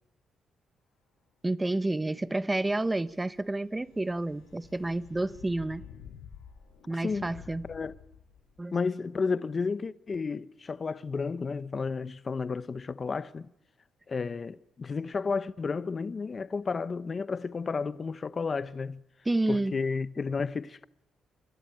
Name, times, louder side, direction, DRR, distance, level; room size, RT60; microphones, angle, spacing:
voice 1, 1.4-5.8 6.9-7.6 8.6-8.8 19.2-19.9, right 2 dB, 15° right, 1.2 m, -30 dB
sound 1, 2.3-8.6, left 8 dB, 85° left, 7.0 m, -51 dB
voice 2, 8.7-13.5 14.1-19.0 19.5-20.9, left 4 dB, 35° left, 1.0 m, -32 dB
26.5 x 25.0 x 9.0 m
cardioid pair, 100°, 0 cm